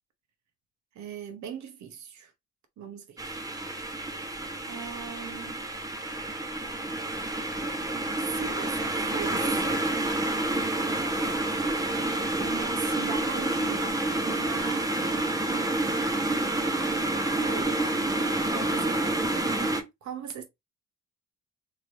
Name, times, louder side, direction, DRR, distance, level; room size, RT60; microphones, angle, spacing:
voice 1, 0.9-2.3 2.8-3.5 4.6-5.6 8.3-9.8 12.4-14.0 14.2-14.9 17.4-18.1 18.5-19.2 20.0-20.4, right 7 dB, 70° right, 1.0 m, -39 dB
sound 1, 3.2-19.8, right 2 dB, 10° right, 0.7 m, -28 dB
3.1 x 3.0 x 2.6 m
cardioid pair, 90°, 30 cm